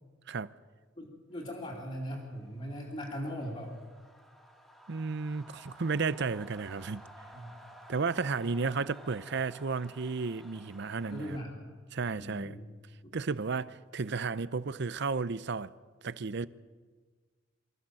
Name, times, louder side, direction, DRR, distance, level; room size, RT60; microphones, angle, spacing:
voice 1, 1.0-3.7 7.3-7.5 11.1-11.7 12.1-12.6 13.0-13.1, equal, 30° left, 2.9 m, -39 dB
sound 1, 1.5-11.4, equal, ahead, 2.1 m, -54 dB
voice 2, 4.9-7.0 7.9-11.4 11.9-12.6 13.1-15.7 16.0-16.5, right 4 dB, 55° right, 0.6 m, -33 dB
24.5 x 14.5 x 7.6 m
head